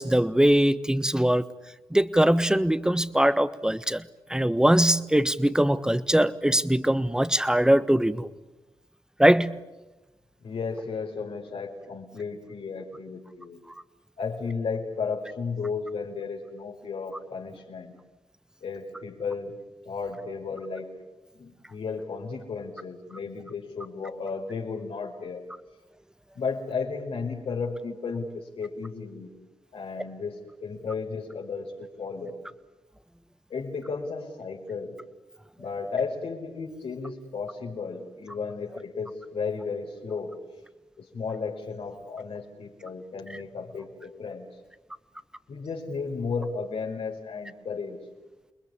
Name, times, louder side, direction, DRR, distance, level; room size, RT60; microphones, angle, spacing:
voice 1, 0.0-1.4 1.9-4.0 4.3-8.3 9.2-9.6, right 1 dB, 5° right, 14 dB, 1.4 m, -22 dB
voice 2, 10.4-13.6 14.2-17.9 18.6-19.6 19.8-20.9 21.3-25.5 26.3-29.3 29.7-32.4 33.5-34.9 35.6-40.3 41.0-44.5 45.5-48.0, left 5 dB, 75° left, 1 dB, 4.9 m, -34 dB
29.0 x 21.0 x 8.6 m, 1.1 s
cardioid pair, 55°, 10 cm